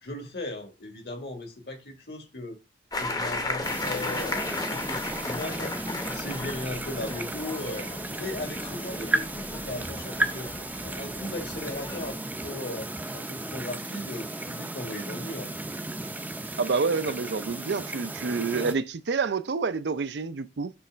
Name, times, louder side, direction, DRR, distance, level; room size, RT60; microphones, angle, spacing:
voice 1, 0.0-2.6 2.9-4.4 4.7-10.5 10.8-15.6, left 2 dB, 60° left, 1.7 m, -37 dB
sound 1, 2.9-12.1, left 2 dB, 20° left, 0.8 m, -35 dB
sound 2, 3.6-18.8, right 2 dB, 10° right, 0.5 m, -34 dB
voice 2, 16.6-20.7, right 4 dB, 75° right, 0.5 m, -28 dB
6.8 x 3.2 x 5.0 m
head